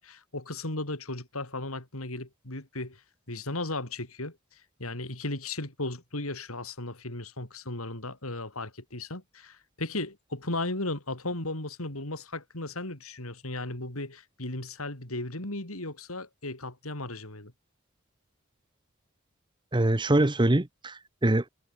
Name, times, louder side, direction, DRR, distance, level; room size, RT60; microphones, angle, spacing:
voice 1, 0.0-3.0 3.3-4.4 4.8-17.5, left 2 dB, 85° left, 5.2 m, -36 dB
voice 2, 19.7-21.5, right 1 dB, 20° right, 1.0 m, -24 dB
head